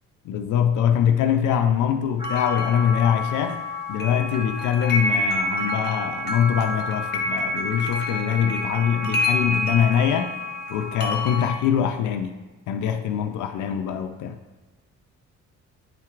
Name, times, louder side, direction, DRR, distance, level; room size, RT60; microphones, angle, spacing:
voice 1, 0.2-3.6 3.9-10.3 10.7-12.3 12.7-14.4, left 8 dB, 80° left, 0.5 m, -23 dB
sound 1, 2.2-11.5, left 2 dB, 35° left, 1.0 m, -27 dB
9.1 x 4.4 x 2.4 m
cardioid pair, 90°, 30 cm